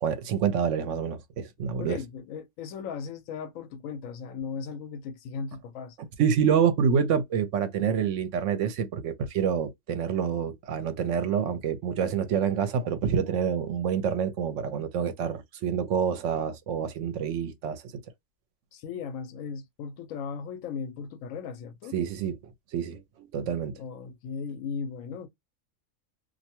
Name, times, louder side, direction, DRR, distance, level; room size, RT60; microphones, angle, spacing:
voice 1, 0.0-2.0 6.0-17.8 21.9-22.4 22.7-23.0 23.3-23.7, right 7 dB, 70° right, 0.9 m, -27 dB
voice 2, 1.8-6.0 18.7-22.0 23.8-25.3, left 6 dB, 90° left, 1.0 m, -37 dB
2.5 x 2.2 x 2.8 m
omnidirectional pair, 1.3 m